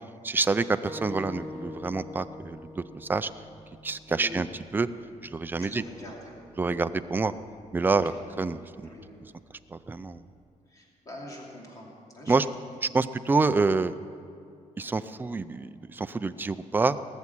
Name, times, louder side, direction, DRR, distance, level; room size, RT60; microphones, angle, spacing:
voice 1, 0.2-3.3 3.8-4.5 4.7-4.9 5.2-5.8 6.6-7.3 7.7-8.1 8.4-8.9 9.7-10.2 12.3-12.5 12.8-13.9 14.8-17.0, right 3 dB, 15° right, 11 dB, 0.4 m, -27 dB
sound 1, 0.8-6.0, left 1 dB, ahead, 3.5 m, -44 dB
voice 2, 4.1-4.4 5.6-6.3 8.0-8.2 8.8-9.1 10.7-12.3, left 1 dB, 25° left, -2 dB, 2.7 m, -44 dB
19.5 x 7.2 x 9.7 m, 2.4 s
cardioid pair, 175°, 13 cm